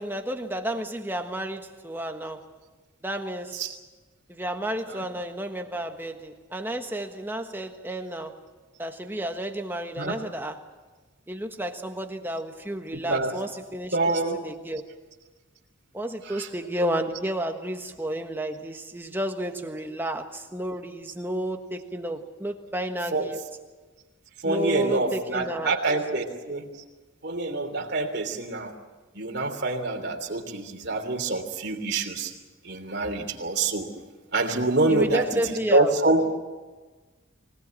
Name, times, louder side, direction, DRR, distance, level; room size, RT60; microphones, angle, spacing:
voice 1, 0.0-2.5 3.0-3.7 4.3-8.4 8.8-10.6 11.3-14.8 15.9-23.4 24.4-25.7 34.9-35.9, right 1 dB, 10° right, 5 dB, 1.4 m, -31 dB
voice 2, 12.9-13.4 13.9-14.4 16.2-16.5 23.1-23.3 24.4-26.7 27.2-28.7 29.1-32.3 32.6-33.9 34.3-36.4, right 2 dB, 50° right, 3 dB, 3.1 m, -26 dB
25.0 x 18.0 x 8.8 m, 1.3 s
head